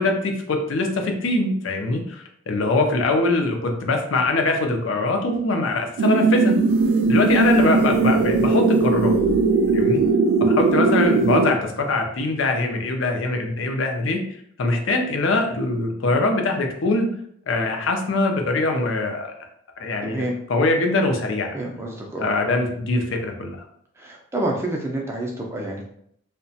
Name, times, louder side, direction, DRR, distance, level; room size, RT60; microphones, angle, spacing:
voice 1, 0.0-6.5 7.1-9.1 9.7-10.0 10.4-14.2 14.6-17.1 17.5-19.3 19.8-20.2 20.5-21.5 22.2-23.6, left 2 dB, 65° left, 3 dB, 0.5 m, -22 dB
sound 1, 6.0-11.5, right 3 dB, 85° right, 0.3 m, -19 dB
voice 2, 20.0-20.4 21.5-22.3 24.0-25.8, right 1 dB, 10° right, -1 dB, 0.4 m, -28 dB
2.8 x 2.1 x 2.7 m, 0.68 s
head